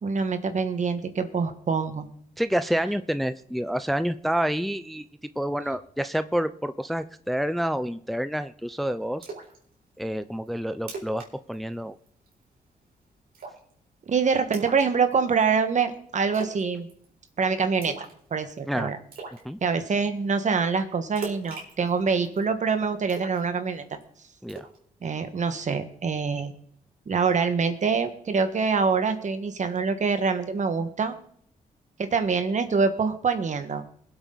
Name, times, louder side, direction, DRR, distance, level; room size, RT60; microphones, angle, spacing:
voice 1, 0.0-2.1 14.1-16.9 17.4-17.9 18.3-19.0 19.6-24.0 25.0-26.5 27.1-31.2 32.0-33.8, right 5 dB, 55° right, 8 dB, 1.6 m, -25 dB
voice 2, 2.4-5.0 5.4-9.3 10.0-12.0 18.7-18.9 19.4-19.6 24.4-24.6, equal, ahead, 12 dB, 0.5 m, -28 dB
Splash splatter, 9.2-9.6 9.9-10.0 10.5-10.6 10.8-11.3 11.5-11.7 12.1-12.4 13.3-13.7 14.5-15.4 16.3-16.6 16.9-17.3 17.8-18.2 18.5-18.6 19.1-19.4 21.2-22.4 23.1-24.0 24.5-24.8, right 4 dB, 80° right, 4.3 m, -39 dB
21.0 x 8.2 x 4.0 m, 0.62 s
cardioid pair, 85°, 15 cm